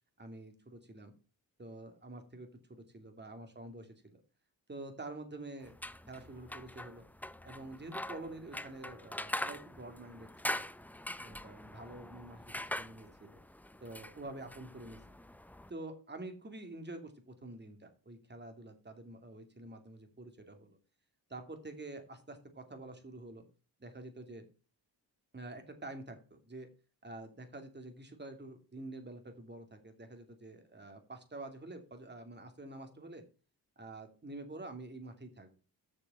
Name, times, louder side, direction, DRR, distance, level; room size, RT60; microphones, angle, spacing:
voice 1, 0.2-1.1 1.6-4.2 4.7-5.8 6.1-7.1 7.4-10.6 11.2-13.4 13.8-15.0 15.7-20.8 21.3-23.4 23.8-24.4 25.3-26.7 27.0-33.2 33.8-35.6, right 2 dB, 25° right, 7 dB, 2.6 m, -47 dB
sound 1, 5.6-15.7, left 1 dB, 5° left, 0.5 m, -43 dB
6.9 x 6.8 x 6.6 m, 0.37 s
cardioid pair, 80°, 41 cm